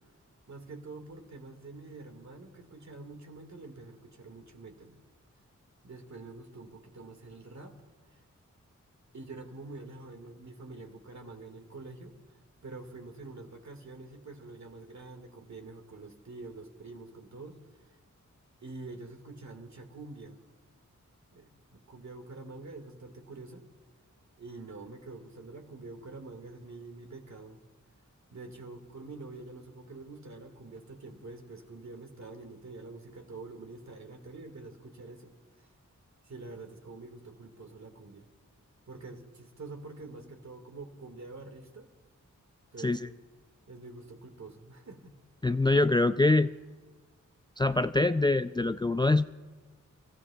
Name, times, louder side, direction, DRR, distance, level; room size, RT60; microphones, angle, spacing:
voice 1, 0.5-5.0 5.8-7.8 8.1-8.2 9.1-12.1 12.6-17.6 17.9-18.0 18.6-20.4 21.3-23.6 24.4-27.6 28.3-35.3 35.6-35.7 36.3-38.3 38.9-41.9 42.7-43.0 43.7-45.2, right 3 dB, 60° right, 4 dB, 2.0 m, -46 dB
voice 2, 42.8-43.1 45.4-46.5 47.6-49.2, left 2 dB, 15° left, 12 dB, 0.3 m, -24 dB
28.0 x 14.5 x 2.4 m, 1.3 s
cardioid pair, 45°, 31 cm